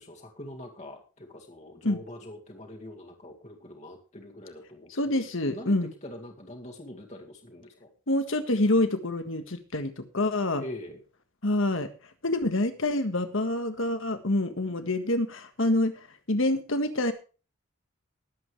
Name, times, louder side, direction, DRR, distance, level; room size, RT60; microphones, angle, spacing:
voice 1, 0.0-5.7 6.0-7.9 10.6-11.0, left 1 dB, 30° left, 1 dB, 2.0 m, -44 dB
voice 2, 4.9-5.9 8.1-10.6 11.4-11.9 12.2-17.1, left 1 dB, 65° left, 8 dB, 1.6 m, -27 dB
20.5 x 8.1 x 3.3 m, 0.35 s
head